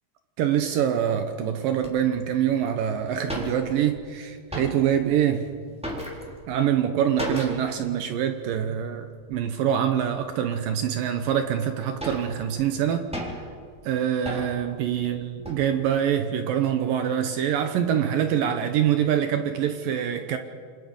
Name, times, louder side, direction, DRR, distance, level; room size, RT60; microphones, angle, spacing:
voice 1, 0.4-5.5 6.5-13.1 13.8-20.4, right 9 dB, 75° right, 2.2 m, -25 dB
sound 1, 1.8-1.9 2.6-2.7 2.9-3.0 3.2-4.0 4.3-5.1 5.4-6.6 7.2-7.8 8.0-8.1 8.5-8.7 9.3-9.8 10.4-10.5 11.2-11.3 11.6-13.6 14.2-14.7 15.2-15.7, equal, ahead, 3.2 m, -35 dB
28.0 x 25.5 x 5.4 m
omnidirectional pair, 5.1 m